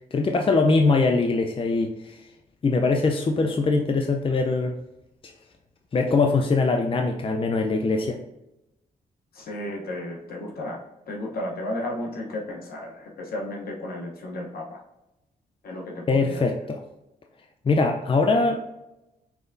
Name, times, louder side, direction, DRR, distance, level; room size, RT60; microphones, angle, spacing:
voice 1, 0.1-2.2 2.6-4.7 5.9-8.2 16.1-16.8 17.6-18.7, left 3 dB, 35° left, 3 dB, 0.6 m, -22 dB
voice 2, 9.3-14.8 15.6-16.5, left 1 dB, 70° left, -1 dB, 1.0 m, -33 dB
6.0 x 3.3 x 2.6 m, 0.92 s
cardioid pair, 75°, 16 cm